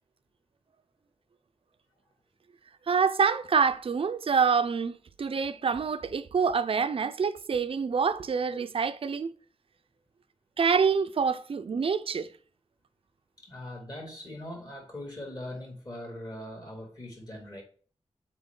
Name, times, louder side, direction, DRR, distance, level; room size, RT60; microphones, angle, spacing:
voice 1, 2.9-9.3 10.6-12.3, right 5 dB, 55° right, 0.5 m, -26 dB
voice 2, 13.4-17.6, left 1 dB, 35° left, 2.7 m, -41 dB
7.1 x 4.5 x 3.7 m
wide cardioid pair, 95°, 12 cm